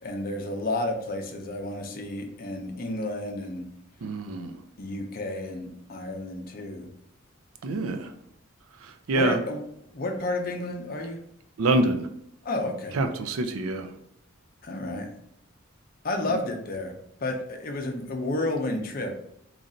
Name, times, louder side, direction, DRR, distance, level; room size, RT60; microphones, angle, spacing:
voice 1, 0.0-3.6 4.8-6.9 9.1-9.6 9.9-11.2 12.4-13.0 14.6-15.1 16.0-16.9 17.2-19.1, left 2 dB, 45° left, 3 dB, 0.6 m, -31 dB
voice 2, 4.0-4.5 7.6-8.1 8.8-9.4 11.6-12.1 12.9-13.9 16.3-16.4, right 2 dB, 90° right, 8 dB, 0.4 m, -26 dB
3.1 x 2.6 x 3.8 m, 0.72 s
head